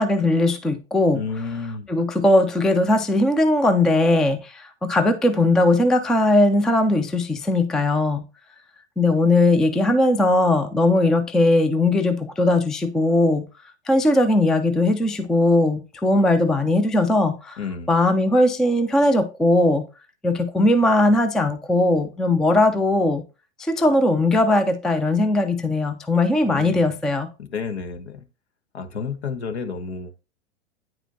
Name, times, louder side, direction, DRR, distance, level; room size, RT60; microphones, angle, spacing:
voice 1, 0.0-1.2 1.9-8.2 9.0-13.5 13.9-17.6 17.9-19.9 20.2-23.2 23.6-27.3, left 2 dB, ahead, 0.4 m, -19 dB
voice 2, 1.1-1.9 17.6-17.9 26.4-26.9 27.4-28.2 28.7-30.2, left 5 dB, 70° left, 1.4 m, -31 dB
9.4 x 4.9 x 2.6 m
figure-of-eight pair, 95°, 34 cm